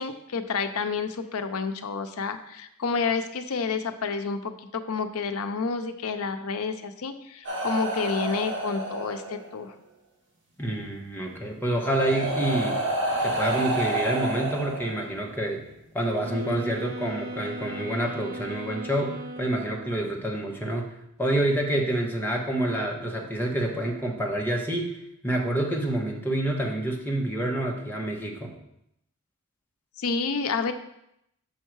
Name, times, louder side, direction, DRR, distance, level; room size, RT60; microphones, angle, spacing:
voice 1, 0.0-9.7 30.0-30.7, left 5 dB, 85° left, 9 dB, 0.6 m, -29 dB
sound 1, 7.4-9.6 10.9-11.0 11.7-15.4 16.4-16.6, right 2 dB, 60° right, 2.2 m, -29 dB
voice 2, 10.6-12.8 13.2-15.6 15.9-20.9 21.2-24.9 25.2-28.5, right 1 dB, 10° left, 0 dB, 1.0 m, -27 dB
sound 2, 16.2-20.1, right 1 dB, 90° right, 2.2 m, -38 dB
6.3 x 5.5 x 4.6 m, 0.79 s
head